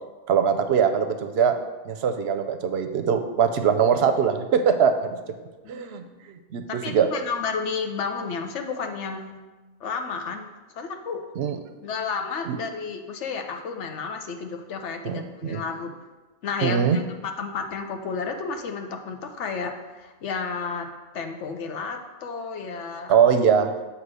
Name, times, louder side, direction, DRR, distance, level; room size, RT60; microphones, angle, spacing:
voice 1, 0.3-1.6 1.9-5.2 5.7-6.0 6.5-7.1 11.4-11.6 12.5-12.6 15.0-15.6 16.6-17.0 23.1-23.7, right 7 dB, 65° right, 7 dB, 0.8 m, -22 dB
voice 2, 5.6-6.1 6.8-9.3 9.8-10.4 10.8-11.2 11.8-15.9 16.4-20.9 21.1-23.2, left 5 dB, 80° left, 5 dB, 1.1 m, -32 dB
7.9 x 3.0 x 6.1 m, 1.2 s
omnidirectional pair, 1.2 m